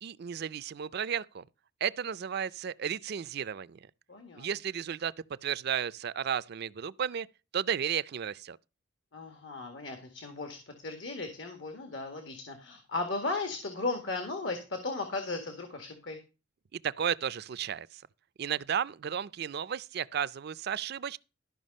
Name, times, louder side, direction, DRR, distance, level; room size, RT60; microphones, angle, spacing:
voice 1, 0.0-1.4 1.8-3.8 4.4-5.1 5.4-7.3 7.5-8.6 16.7-18.0 18.4-21.2, right 8 dB, 60° right, 0.4 m, -33 dB
voice 2, 4.1-4.5 9.1-16.2, left 3 dB, 75° left, 1.9 m, -36 dB
13.0 x 5.7 x 5.3 m
head